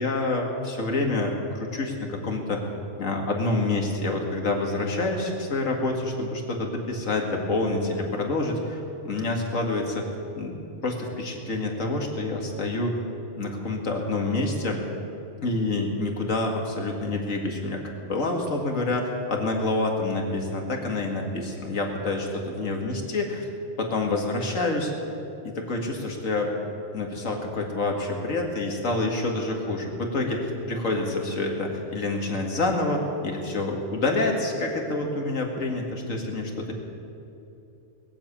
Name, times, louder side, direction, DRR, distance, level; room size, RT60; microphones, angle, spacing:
voice 1, 0.0-2.6 3.0-10.1 10.4-10.6 10.8-13.0 13.4-14.8 15.4-23.4 23.8-24.9 25.4-26.5 26.9-36.7, left 2 dB, 90° left, 1 dB, 2.4 m, -27 dB
20.5 x 7.6 x 8.7 m, 2.9 s
omnidirectional pair, 1.3 m